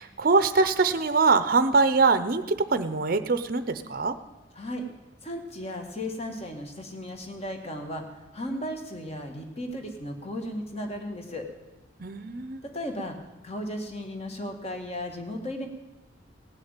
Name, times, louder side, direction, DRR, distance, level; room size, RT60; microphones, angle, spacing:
voice 1, 0.0-2.4 2.7-4.2 12.0-12.6, right 4 dB, 50° right, 11 dB, 0.7 m, -23 dB
voice 2, 4.5-4.9 5.2-11.5 12.6-13.2 13.4-15.7, left 1 dB, 30° left, 4 dB, 1.8 m, -35 dB
17.5 x 6.6 x 8.9 m, 1.1 s
head